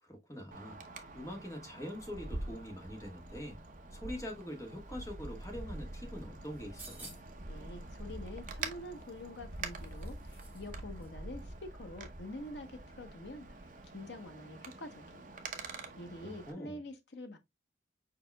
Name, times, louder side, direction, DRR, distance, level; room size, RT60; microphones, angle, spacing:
voice 1, 0.0-0.8 1.1-3.6 3.9-7.1 16.2-16.8, equal, 15° left, 1.4 m, -44 dB
Wind, 0.5-16.5, right 2 dB, 45° right, 0.8 m, -45 dB
sound 1, 6.5-7.4 8.9-10.7 11.0-11.1, right 3 dB, 10° right, 2.0 m, -53 dB
voice 2, 7.5-13.5 13.9-15.4 16.0-17.4, left 1 dB, 70° left, 1.0 m, -46 dB
4.9 x 4.9 x 2.2 m
head